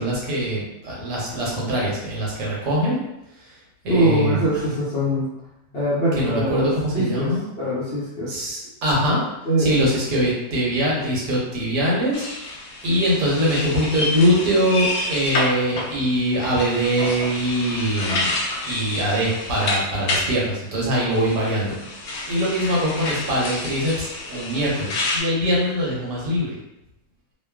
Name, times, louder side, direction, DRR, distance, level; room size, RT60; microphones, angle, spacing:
voice 1, 0.0-3.0 3.4-3.6 3.8-4.6 5.7-5.8 6.2-7.5 8.3-9.2 9.6-12.6 12.8-18.3 18.6-26.6, equal, 80° right, -5 dB, 1.5 m, -23 dB
voice 2, 3.9-5.3 5.7-7.3 7.6-8.4 9.4-9.7, right 1 dB, 50° left, -10 dB, 0.8 m, -22 dB
sound 1, 12.1-20.3 21.1-25.2, left 2 dB, 80° left, 0.6 m, -29 dB
3.1 x 2.3 x 2.3 m, 0.90 s
omnidirectional pair, 1.8 m